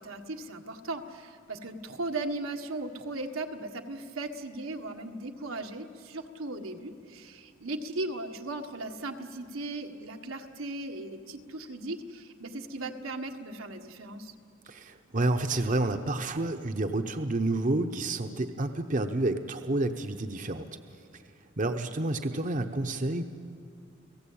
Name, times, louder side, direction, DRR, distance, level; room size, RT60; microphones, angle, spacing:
voice 1, 0.0-14.3, right 2 dB, 90° right, 3 dB, 1.6 m, -37 dB
voice 2, 14.7-20.7 21.1-21.2 21.6-23.3, right 2 dB, 40° right, 6 dB, 0.8 m, -29 dB
30.0 x 17.5 x 8.7 m, 2.4 s
head